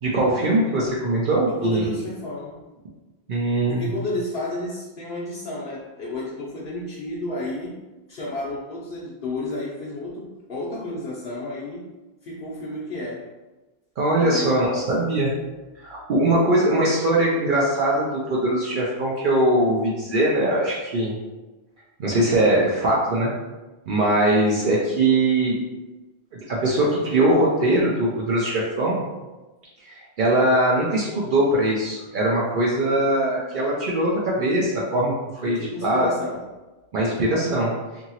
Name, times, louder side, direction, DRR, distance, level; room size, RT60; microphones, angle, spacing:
voice 1, 0.0-1.8 3.3-3.9 14.0-15.3 15.8-21.2 22.0-23.3 23.9-25.6 26.5-29.0 29.9-36.1 36.9-37.7, right 1 dB, 60° right, -4 dB, 0.6 m, -21 dB
voice 2, 1.5-2.6 3.7-7.8 8.1-11.9 12.2-13.3 14.2-15.2 35.4-36.4, left 1 dB, 60° left, -7 dB, 0.7 m, -32 dB
2.8 x 2.6 x 2.8 m, 1.2 s
omnidirectional pair, 1.1 m